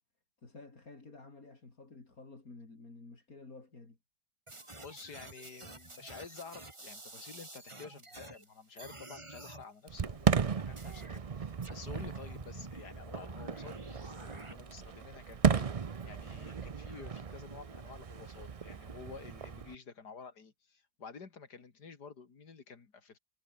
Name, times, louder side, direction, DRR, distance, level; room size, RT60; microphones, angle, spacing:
voice 1, 0.4-4.0, left 3 dB, 60° left, 4.3 m, -52 dB
sound 1, 4.5-8.4 8.8-9.6 10.8-11.2 11.6-14.5, right 2 dB, 20° right, 2.1 m, -49 dB
voice 2, 4.8-23.2, left 5 dB, 85° left, 3.1 m, -50 dB
Fireworks, 9.9-19.7, right 6 dB, 65° right, 0.3 m, -35 dB
omnidirectional pair, 1.7 m